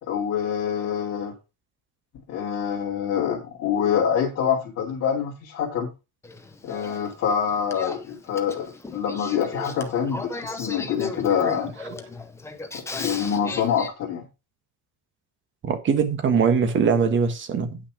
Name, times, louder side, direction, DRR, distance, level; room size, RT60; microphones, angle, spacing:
voice 1, 0.0-1.4 2.3-5.9 6.6-11.7 12.7-14.3, left 8 dB, 40° left, 2.7 m, -26 dB
Male speech man speaking / Female speech woman speaking / Conversation, 6.2-13.9, left 3 dB, 5° left, 0.6 m, -36 dB
voice 2, 15.7-17.8, right 6 dB, 30° right, 1.5 m, -21 dB
9.5 x 6.1 x 4.8 m
cardioid pair, 180°, 40 cm